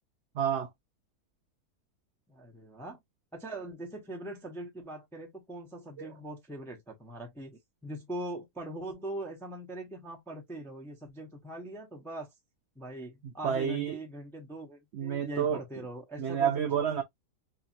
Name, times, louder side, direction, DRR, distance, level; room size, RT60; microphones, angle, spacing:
voice 1, 0.3-0.7 6.0-6.1 13.4-14.0 14.9-15.6 16.2-17.0, right 8 dB, 85° right, 0.5 m, -29 dB
voice 2, 2.3-3.0 3.3-12.3 12.8-16.5, right 1 dB, 5° left, 0.3 m, -41 dB
2.8 x 2.7 x 2.5 m
omnidirectional pair, 1.8 m